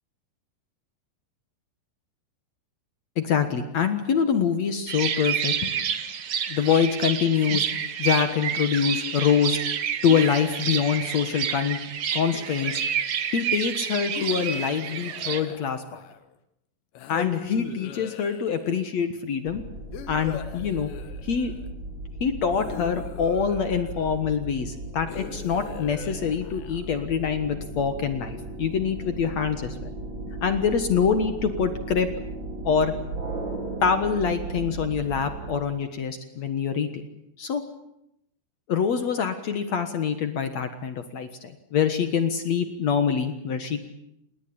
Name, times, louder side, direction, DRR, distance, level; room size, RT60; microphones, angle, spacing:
voice 1, 3.2-5.7 6.5-7.7 8.0-9.6 10.0-11.8 12.1-12.8 13.3-16.0 17.1-19.6 20.1-20.9 21.2-21.5 22.2-29.8 30.3-32.1 32.6-32.9 33.8-36.9 37.4-37.6 38.7-43.8, left 7 dB, 55° left, 9 dB, 2.0 m, -25 dB
sound 1, 4.9-15.4, right 8 dB, 70° right, 1.4 m, -29 dB
sound 2, 10.1-11.6 12.3-13.2 14.1-16.3 17.0-18.8 19.9-21.7 22.5-24.2 25.1-27.0, left 9 dB, 85° left, 3.7 m, -40 dB
sound 3, 19.5-35.6, right 2 dB, 30° right, 5.4 m, -36 dB
28.0 x 20.0 x 8.7 m, 0.81 s
omnidirectional pair, 4.8 m